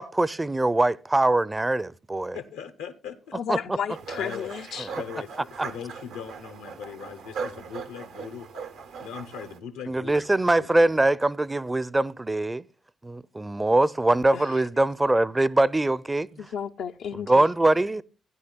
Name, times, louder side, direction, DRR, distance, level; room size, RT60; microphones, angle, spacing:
voice 1, 0.0-2.4 3.5-3.6 4.8-4.9 9.9-12.7 13.0-16.5 17.1-18.0, right 2 dB, 20° right, 0.5 m, -23 dB
voice 2, 2.3-3.3 4.2-4.5 5.0-8.5 9.0-11.2, left 7 dB, 90° left, 0.9 m, -40 dB
voice 3, 3.3-4.9 14.3-14.6 16.4-17.5, left 7 dB, 70° left, 0.4 m, -33 dB
sound 1, 3.9-9.6, right 5 dB, 75° right, 0.8 m, -39 dB
16.0 x 9.6 x 2.2 m
hypercardioid pair, 45°, 0 cm